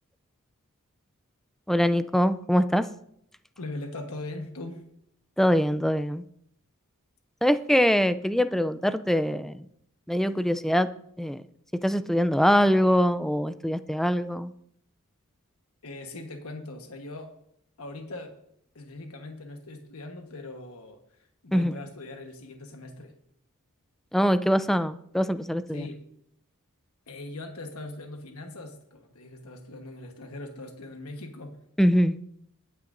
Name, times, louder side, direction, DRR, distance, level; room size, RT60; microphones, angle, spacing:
voice 1, 1.7-2.9 5.4-6.2 7.4-9.6 10.1-10.9 11.2-11.4 11.8-14.5 21.5-21.7 24.1-25.9 31.8-32.2, equal, ahead, 12 dB, 0.4 m, -23 dB
voice 2, 3.6-4.8 15.8-17.3 17.8-18.3 18.7-21.0 21.4-23.1 25.7-26.0 27.1-31.6, left 2 dB, 75° left, 4 dB, 1.3 m, -40 dB
20.5 x 9.6 x 2.6 m, 0.71 s
head